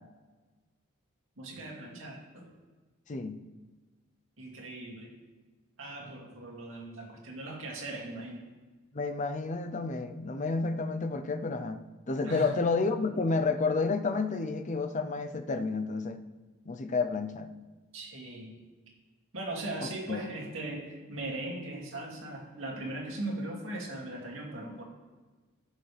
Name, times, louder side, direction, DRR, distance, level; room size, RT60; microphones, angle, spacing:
voice 1, 1.4-2.5 4.4-5.1 5.8-8.5 12.2-12.5 17.9-18.6 19.3-24.8, right 2 dB, 75° right, -2 dB, 2.4 m, -39 dB
voice 2, 3.1-3.4 8.9-16.2 16.7-17.5 20.1-20.2, left 3 dB, 35° left, 8 dB, 0.6 m, -30 dB
14.5 x 6.6 x 3.4 m, 1.3 s
head